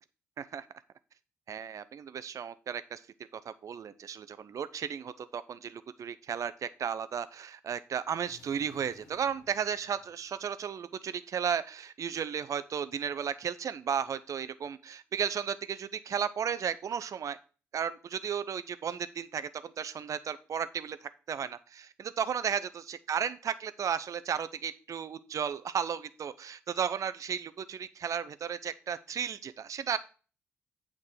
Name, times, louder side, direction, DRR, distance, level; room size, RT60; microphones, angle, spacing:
voice 1, 1.5-3.0 3.3-17.4 17.7-30.0, right 7 dB, 55° right, 13 dB, 0.7 m, -34 dB
sound 1, 8.1-10.7, left 4 dB, 60° left, 1.4 m, -59 dB
8.6 x 3.7 x 6.3 m, 0.36 s
hypercardioid pair, 40°, 7 cm